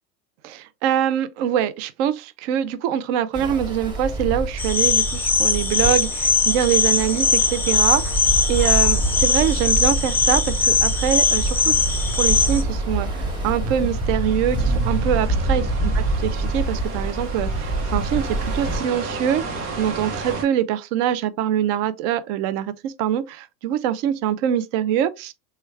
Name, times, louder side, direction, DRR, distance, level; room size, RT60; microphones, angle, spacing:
voice 1, 0.4-8.2 8.5-11.7 12.1-15.6 16.2-25.3, right 10 dB, 55° right, 0.5 m, -24 dB
Ocean, 3.3-18.8, right 2 dB, 10° right, 1.0 m, -25 dB
sound 1, 4.4-20.4, right 3 dB, 90° right, 1.0 m, -36 dB
sound 2, 4.6-12.6, left 5 dB, 5° left, 0.4 m, -20 dB
3.1 x 2.3 x 3.1 m
hypercardioid pair, 100°, 45 cm